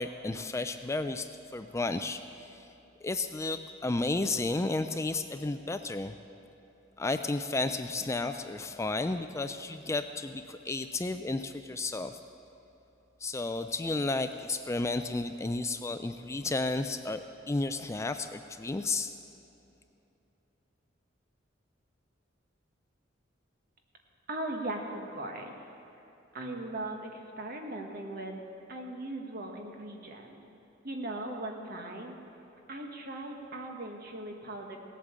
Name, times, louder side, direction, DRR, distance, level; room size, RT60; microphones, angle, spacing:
voice 1, 0.0-2.7 3.0-6.2 7.0-12.2 13.2-19.1, left 2 dB, 15° left, 9 dB, 0.3 m, -32 dB
voice 2, 24.3-25.5 26.3-28.4 28.7-30.4 30.8-32.2 32.7-34.8, right 2 dB, 50° right, 2 dB, 1.6 m, -38 dB
17.5 x 8.5 x 7.4 m, 2.9 s
head